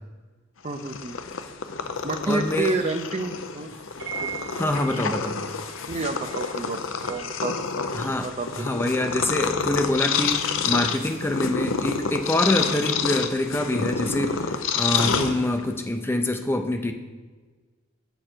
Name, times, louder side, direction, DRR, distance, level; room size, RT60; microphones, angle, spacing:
Purr, 0.6-15.8, left 6 dB, 80° left, 0.6 m, -28 dB
voice 1, 0.6-1.2 2.0-3.7 4.2-4.4 5.9-6.8 7.1-8.7 15.1-15.4, right 3 dB, 35° right, 8 dB, 0.6 m, -29 dB
voice 2, 2.3-2.8 4.6-5.4 7.9-8.3 8.6-16.9, left 1 dB, 10° left, 5 dB, 0.5 m, -25 dB
sound 1, 2.4-9.6 10.2-13.1, right 7 dB, 55° right, 1.7 m, -44 dB
8.6 x 6.8 x 4.5 m, 1.4 s
head